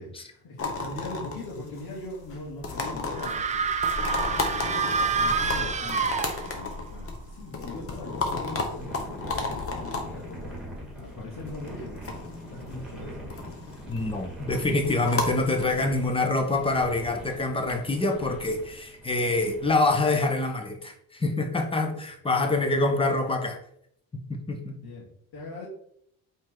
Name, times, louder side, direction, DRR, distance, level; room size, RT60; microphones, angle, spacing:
voice 1, 0.0-3.7 4.4-6.2 6.5-12.1 12.5-13.3 24.8-25.7, left 2 dB, 80° left, -7 dB, 2.7 m, -41 dB
sound 1, 0.6-17.7, left 3 dB, 35° left, 1.3 m, -34 dB
sound 2, 3.2-6.8, right 5 dB, 20° right, 0.4 m, -27 dB
sound 3, 8.7-20.1, right 1 dB, ahead, 2.1 m, -43 dB
voice 2, 13.9-23.6 24.3-24.8, left 2 dB, 15° left, 4 dB, 0.9 m, -26 dB
8.4 x 4.5 x 3.8 m, 0.68 s
cardioid pair, 175°, 37 cm